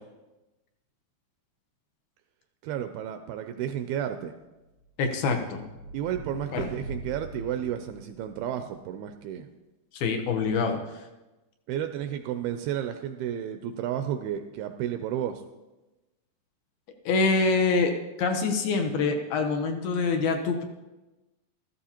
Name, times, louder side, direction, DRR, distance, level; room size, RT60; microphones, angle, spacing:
voice 1, 2.6-4.3 5.9-9.5 11.7-15.4, right 10 dB, 85° right, 8 dB, 2.2 m, -32 dB
sound 1, 4.8-8.6, right 3 dB, 65° right, 1.1 m, -41 dB
voice 2, 5.0-5.6 6.5-6.7 9.9-10.8 17.1-17.9 18.2-20.6, left 4 dB, 75° left, 4 dB, 2.5 m, -25 dB
14.0 x 13.5 x 2.9 m, 1.1 s
omnidirectional pair, 4.7 m